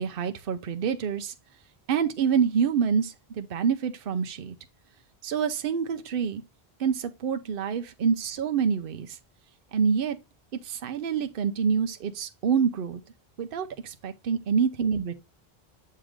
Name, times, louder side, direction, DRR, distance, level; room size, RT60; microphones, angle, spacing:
voice 1, 0.0-1.3 1.9-4.6 5.2-6.4 6.8-9.2 9.7-10.2 10.6-13.0 13.4-15.1, right 6 dB, 65° right, 0.8 m, -27 dB
7.4 x 2.9 x 4.9 m
omnidirectional pair, 1.0 m